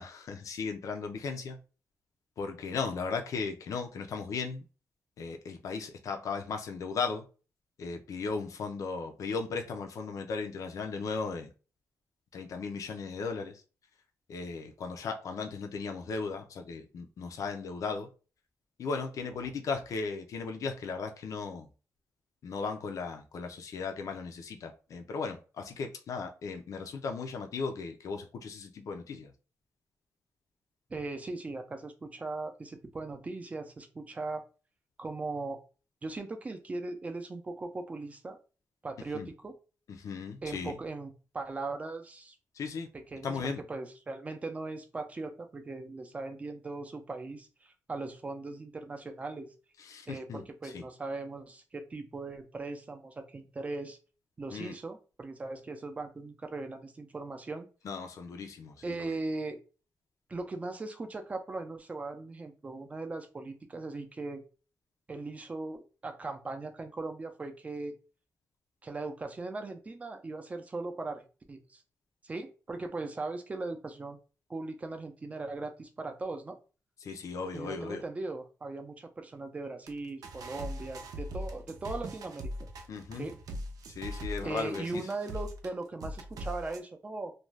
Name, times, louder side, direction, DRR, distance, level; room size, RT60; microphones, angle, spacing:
voice 1, 0.0-1.6 2.4-4.6 5.2-7.3 7.8-11.5 12.3-13.6 14.3-18.1 18.8-21.7 22.4-29.3 39.1-39.3 39.9-40.8 42.5-42.9 43.2-43.6 49.8-50.8 54.5-54.7 57.8-59.2 77.0-78.0 82.9-83.3 83.9-85.1, left 4 dB, 60° left, 0.5 m, -36 dB
voice 2, 30.9-34.4 35.0-35.6 36.0-38.4 38.8-39.5 40.4-42.4 42.9-49.5 50.1-54.0 54.4-57.7 58.8-59.6 60.3-64.4 65.1-67.9 68.8-71.8 72.2-74.2 74.5-76.6 77.5-82.5 83.1-83.4 84.4-87.3, right 3 dB, 20° right, 0.4 m, -39 dB
sound 1, 79.9-80.0 80.2-85.7 86.0-86.8, equal, 80° right, 0.5 m, -41 dB
2.5 x 2.2 x 3.2 m
wide cardioid pair, 175°, 6 cm